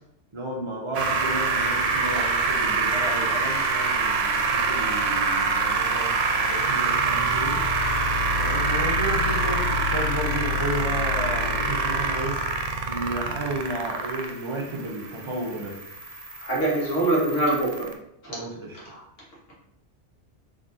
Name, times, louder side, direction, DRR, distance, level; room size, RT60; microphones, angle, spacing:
voice 1, 0.3-7.6 8.4-12.4 12.9-15.8 18.3-18.8, right 2 dB, 35° right, -1 dB, 0.5 m, -33 dB
sound 1, 0.9-17.9, right 3 dB, 80° right, 0.9 m, -25 dB
voice 2, 16.4-17.9 18.2-18.3 18.9-19.0, right 2 dB, 90° left, -5 dB, 1.7 m, -24 dB
3.7 x 3.3 x 2.7 m, 0.77 s
omnidirectional pair, 1.2 m